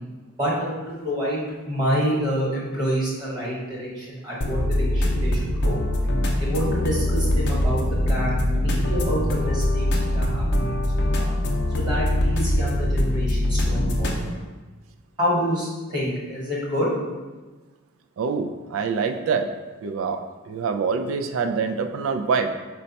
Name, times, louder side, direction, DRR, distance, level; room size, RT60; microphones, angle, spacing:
voice 1, 0.4-5.8 6.4-9.9 10.1-11.3 11.7-14.1 15.2-16.9, equal, 20° right, -6 dB, 1.2 m, -27 dB
sound 1, 4.4-14.2, left 1 dB, 55° left, 0.6 m, -23 dB
voice 2, 18.2-19.5 19.8-20.2 20.5-22.5, right 5 dB, 70° right, 6 dB, 0.3 m, -25 dB
5.1 x 2.2 x 4.0 m, 1.3 s
head